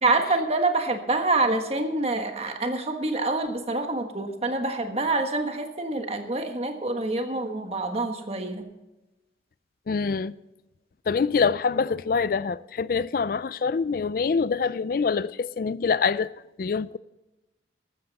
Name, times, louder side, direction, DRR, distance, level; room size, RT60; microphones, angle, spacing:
voice 1, 0.0-8.6, right 2 dB, 35° right, 1.4 m, -26 dB
voice 2, 9.9-10.3 11.1-16.3 16.6-17.0, left 5 dB, 50° left, 0.4 m, -25 dB
13.5 x 13.5 x 4.2 m
head